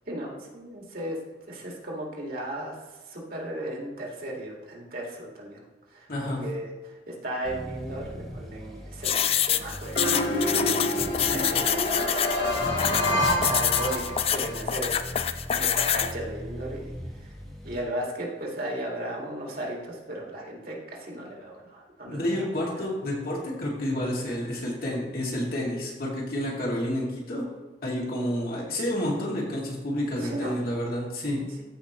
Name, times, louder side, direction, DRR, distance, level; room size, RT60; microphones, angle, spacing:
voice 1, 0.1-1.2 1.5-2.7 3.1-5.6 5.9-10.7 11.3-16.9 17.6-22.5 22.7-22.8 30.2-30.6, right 1 dB, 55° right, -2 dB, 2.0 m, -36 dB
voice 2, 6.1-6.4 11.2-11.5 22.1-27.4 27.8-31.4, left 1 dB, 55° left, -4 dB, 2.4 m, -30 dB
Accelerating revving vroom, 7.5-17.8, equal, ahead, 1.3 m, -39 dB
sound 1, 9.0-16.1, left 9 dB, 35° left, 0.3 m, -26 dB
sound 2, 10.0-14.6, left 1 dB, 75° left, 1.2 m, -27 dB
14.5 x 5.0 x 3.1 m, 1.2 s
head